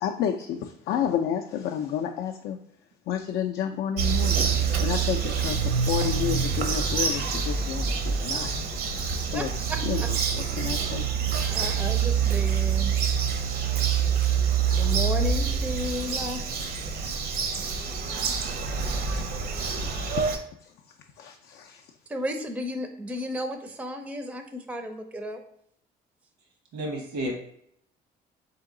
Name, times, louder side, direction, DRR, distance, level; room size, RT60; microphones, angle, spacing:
voice 1, 0.0-2.6 3.1-4.3 4.8-8.5 9.3-9.5 9.9-10.0 10.6-11.1 17.5-18.3 19.2-20.2 21.2-21.8, left 9 dB, 70° left, 3 dB, 0.4 m, -31 dB
Bird vocalization bird call bird song, 4.0-20.4, right 6 dB, 65° right, 0.6 m, -26 dB
voice 2, 9.3-10.1 11.5-13.1 14.4-16.4 22.1-25.4, equal, 5° right, 5 dB, 0.4 m, -34 dB
voice 3, 26.7-27.4, equal, 90° right, 1 dB, 1.1 m, -31 dB
3.8 x 2.8 x 3.6 m, 0.70 s
cardioid pair, 110°, 17 cm